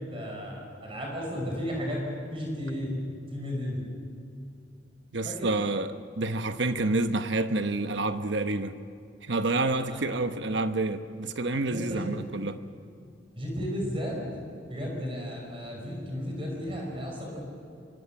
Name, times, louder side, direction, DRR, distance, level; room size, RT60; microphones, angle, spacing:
voice 1, 0.0-2.1 2.3-3.0 3.3-3.8 5.2-5.5 9.8-10.0 11.5-12.2 13.4-14.2 14.7-17.4, equal, 30° right, 5.6 m, -34 dB
voice 2, 5.1-8.8 9.2-12.6, right 2 dB, 65° right, 1.0 m, -28 dB
26.5 x 24.5 x 7.3 m
head